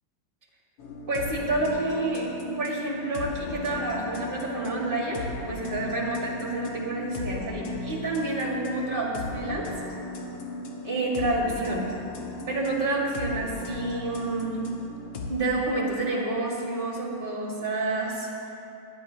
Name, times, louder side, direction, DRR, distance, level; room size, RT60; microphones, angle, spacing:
sound 1, 0.8-15.3, left 2 dB, 70° left, 1.8 m, -37 dB
voice 1, 1.1-2.3 2.6-9.7 10.8-11.9 12.5-14.6 15.3-18.3, right 2 dB, 30° right, -2 dB, 1.7 m, -29 dB
20.0 x 9.8 x 2.7 m, 2.7 s
omnidirectional pair, 2.2 m